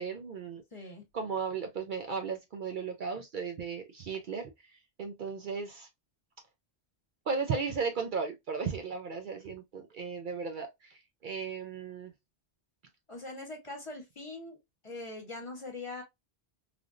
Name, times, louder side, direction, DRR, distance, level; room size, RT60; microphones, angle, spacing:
voice 1, 0.0-0.6 1.1-4.5 5.0-5.9 7.3-12.1, right 5 dB, 60° right, 0.6 m, -35 dB
voice 2, 0.7-1.0 13.1-14.6 14.8-16.0, left 2 dB, 30° left, 1.1 m, -42 dB
3.3 x 2.5 x 2.4 m
omnidirectional pair, 1.1 m